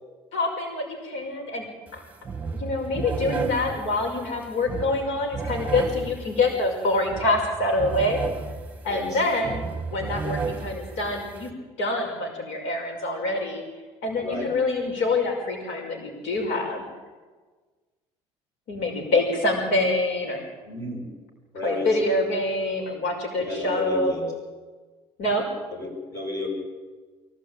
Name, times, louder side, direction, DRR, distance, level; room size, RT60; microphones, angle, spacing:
voice 1, 0.3-1.7 1.9-2.0 2.5-8.2 8.8-9.6 9.9-11.5 11.8-13.6 14.0-16.8 18.7-20.4 21.6-24.1 25.2-25.4, left 2 dB, 75° left, 2 dB, 5.6 m, -26 dB
sound 1, 1.9-2.0 2.2-11.5, right 4 dB, 15° right, 2.1 m, -33 dB
voice 2, 8.9-9.2 14.2-14.5 20.6-21.1 21.5-21.9 23.4-24.3 25.7-26.5, left 2 dB, 30° left, 1 dB, 7.5 m, -31 dB
24.0 x 16.5 x 8.9 m, 1.3 s
cardioid pair, 150°, 11 cm